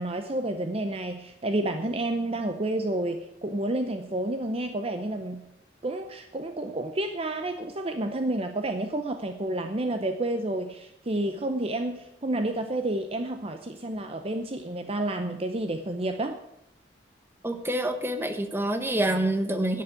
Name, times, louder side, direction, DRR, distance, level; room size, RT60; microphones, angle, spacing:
voice 1, 0.0-5.4 5.8-16.4, right 1 dB, 35° right, 7 dB, 0.7 m, -30 dB
voice 2, 17.4-19.8, right 1 dB, 15° right, 7 dB, 1.2 m, -27 dB
10.5 x 8.5 x 9.2 m, 0.83 s
head